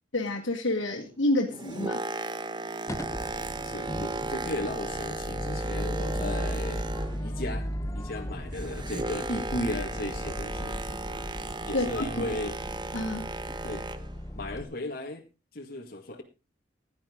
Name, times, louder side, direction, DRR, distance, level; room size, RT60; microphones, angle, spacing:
voice 1, 0.1-2.0 11.7-12.3 12.9-13.3, left 1 dB, 80° left, -1 dB, 2.0 m, -29 dB
Boat Water vehicle, 1.3-7.5 7.7-14.2 14.8-15.0, right 2 dB, 25° right, 1.0 m, -36 dB
sound 1, 2.9-14.6, equal, 15° left, 0.9 m, -36 dB
voice 2, 3.6-6.9 7.2-10.8 11.7-12.6 13.6-13.9 14.3-15.2 15.5-16.2, left 1 dB, 50° left, 1 dB, 1.9 m, -35 dB
16.0 x 10.5 x 3.8 m, 0.28 s
head